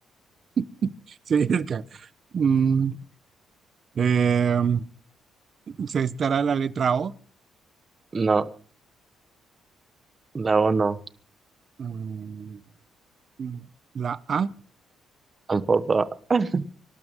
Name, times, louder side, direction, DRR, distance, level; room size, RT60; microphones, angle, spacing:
voice 1, 0.6-2.1 2.3-3.0 3.9-4.8 5.7-7.1 11.8-12.6 13.4-13.7 13.9-14.5, right 7 dB, 50° right, 17 dB, 0.9 m, -25 dB
voice 2, 8.1-8.5 10.3-11.0 15.5-16.7, right 4 dB, 35° right, 14 dB, 1.2 m, -22 dB
25.0 x 12.5 x 3.7 m, 0.42 s
cardioid pair, 90°, 0 cm